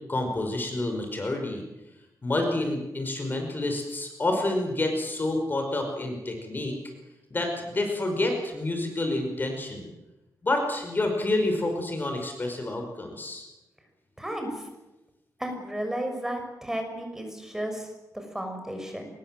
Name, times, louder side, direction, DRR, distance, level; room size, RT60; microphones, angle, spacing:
voice 1, 0.1-1.6 2.2-6.8 7.3-9.9 10.4-13.5, left 2 dB, 30° left, 4 dB, 5.3 m, -28 dB
voice 2, 14.2-14.7 15.4-19.1, right 1 dB, 5° right, 4 dB, 6.3 m, -33 dB
25.0 x 21.5 x 7.7 m, 1.0 s
wide cardioid pair, 110°, 6 cm